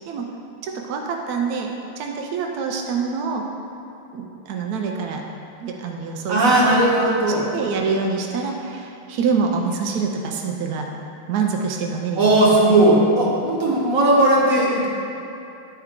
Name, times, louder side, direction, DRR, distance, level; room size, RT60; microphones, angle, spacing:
voice 1, 0.6-1.7 2.0-3.4 4.1-5.2 5.6-6.7 7.2-10.9 11.3-12.6, right 5 dB, 80° right, 1 dB, 0.8 m, -26 dB
voice 2, 6.3-7.4 12.2-14.9, right 1 dB, 45° right, -5 dB, 1.5 m, -17 dB
9.9 x 4.6 x 3.6 m, 2.8 s
omnidirectional pair, 2.2 m